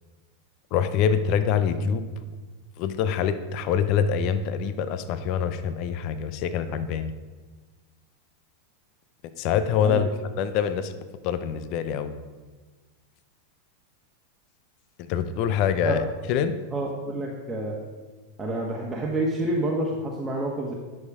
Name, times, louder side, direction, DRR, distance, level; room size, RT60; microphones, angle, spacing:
voice 1, 0.7-2.0 2.8-7.1 9.4-10.1 10.4-10.9 11.2-12.1 15.0-16.6, left 7 dB, 50° left, 11 dB, 0.6 m, -25 dB
voice 2, 16.7-17.7 18.4-20.7, right 1 dB, 20° right, -3 dB, 1.3 m, -28 dB
9.7 x 6.4 x 4.9 m, 1.3 s
hypercardioid pair, 95°, 0 cm